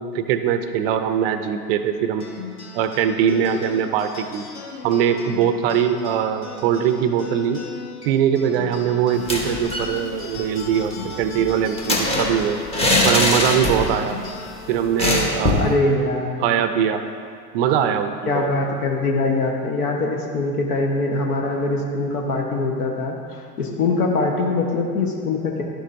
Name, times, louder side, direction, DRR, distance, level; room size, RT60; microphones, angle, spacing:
voice 1, 0.0-2.3 2.7-4.5 4.8-7.6 8.0-12.6 13.0-14.2 14.7-15.7 16.4-17.0 17.5-18.5, right 8 dB, 40° right, 8 dB, 0.5 m, -21 dB
sound 1, 2.2-16.9, left 4 dB, 45° left, 1.7 m, -39 dB
sound 2, 9.1-9.9 10.2-10.3 10.6-14.1 14.3-14.5 15.0-15.7, left 1 dB, 10° left, 0.9 m, -22 dB
voice 2, 15.6-16.5 18.3-25.6, left 3 dB, 65° left, 1 dB, 1.2 m, -23 dB
11.5 x 6.5 x 2.6 m, 2.3 s
hypercardioid pair, 100°, 49 cm